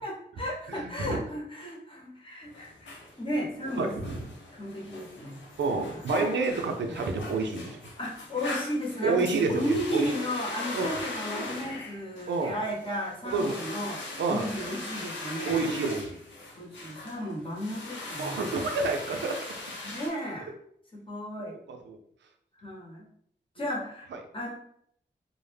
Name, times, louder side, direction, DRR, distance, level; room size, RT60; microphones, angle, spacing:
voice 1, 0.0-3.9 4.5-5.5 5.9-6.0 6.8-7.0 8.0-14.0 14.3-15.7 16.6-18.5 19.8-20.5 20.9-21.6 22.5-23.1 23.5-24.5, equal, 30° left, -2 dB, 0.9 m, -34 dB
voice 2, 0.8-1.2 3.8-4.2 5.6-7.8 9.0-10.1 10.7-10.9 12.3-12.6 13.3-13.5 14.2-14.5 15.5-16.2 18.2-19.4 21.5-22.0, right 3 dB, 75° right, 4 dB, 0.4 m, -29 dB
sound 1, 2.4-20.1, left 2 dB, 85° left, 0.6 m, -40 dB
2.1 x 2.0 x 3.2 m, 0.67 s
cardioid pair, 45°, 19 cm